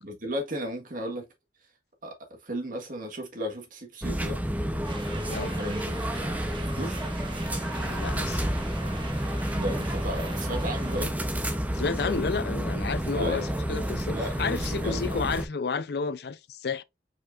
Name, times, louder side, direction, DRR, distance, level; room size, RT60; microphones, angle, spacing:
voice 1, 0.0-1.2 2.0-4.4 5.2-6.2 6.6-7.0 9.5-11.2 11.5-11.7 13.2-13.5 14.1-15.2, equal, 50° right, 1.8 m, -35 dB
sound 1, 4.0-15.5, equal, 10° right, 0.7 m, -30 dB
sound 2, 4.8-11.0, right 3 dB, 30° right, 1.1 m, -42 dB
voice 2, 7.8-8.4 11.7-16.8, left 4 dB, 65° left, 0.5 m, -31 dB
5.0 x 4.3 x 2.4 m
head